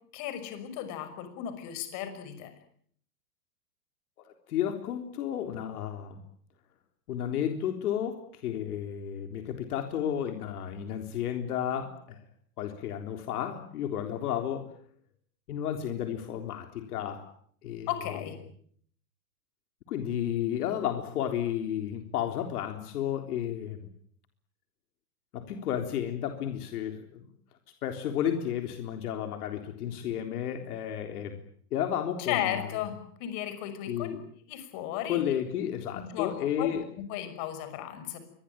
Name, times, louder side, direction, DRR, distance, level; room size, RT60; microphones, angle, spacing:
voice 1, 0.1-2.5 17.9-18.4 32.3-34.1 34.5-35.2 35.9-38.2, left 11 dB, 40° left, 9 dB, 6.0 m, -35 dB
voice 2, 4.5-6.2 7.1-12.2 12.6-14.7 15.5-17.3 17.6-17.9 19.9-23.9 25.3-27.3 27.8-31.4 31.7-32.6 33.9-34.2 35.1-36.8, left 10 dB, 70° left, 6 dB, 3.9 m, -32 dB
25.5 x 22.0 x 9.0 m, 0.62 s
supercardioid pair, 155°, 47 cm